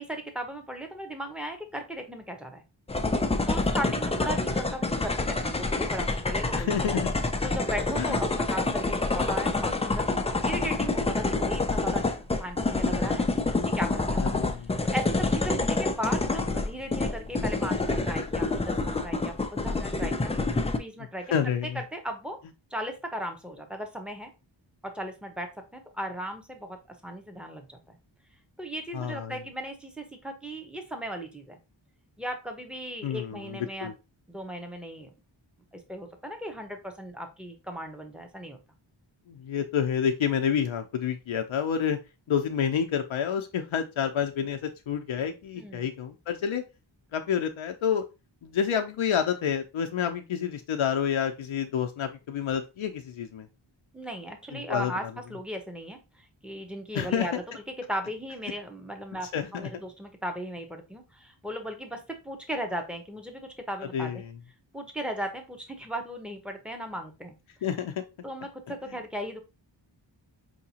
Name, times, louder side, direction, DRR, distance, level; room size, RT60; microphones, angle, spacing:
voice 1, 0.0-2.6 3.5-7.0 7.4-14.4 14.9-20.3 20.7-21.3 21.7-22.4 22.7-24.3 24.8-26.8 27.0-28.0 28.6-31.6 32.2-33.9 34.3-35.1 35.9-38.6 45.6-45.9 53.9-57.3 57.7-64.2 64.7-67.3 68.2-69.4, equal, ahead, 4 dB, 0.8 m, -37 dB
sound 1, 2.9-20.8, left 3 dB, 15° left, 0.3 m, -27 dB
voice 2, 6.6-7.0 8.0-8.2 14.2-14.7 21.3-21.8 28.9-29.4 33.0-33.9 39.3-42.0 42.3-46.6 47.1-48.0 48.4-53.5 54.5-54.9 56.9-57.3 59.3-59.7 63.9-64.2 67.6-67.9, left 8 dB, 85° left, 5 dB, 0.6 m, -29 dB
4.6 x 2.8 x 2.8 m, 0.27 s
wide cardioid pair, 90°, 47 cm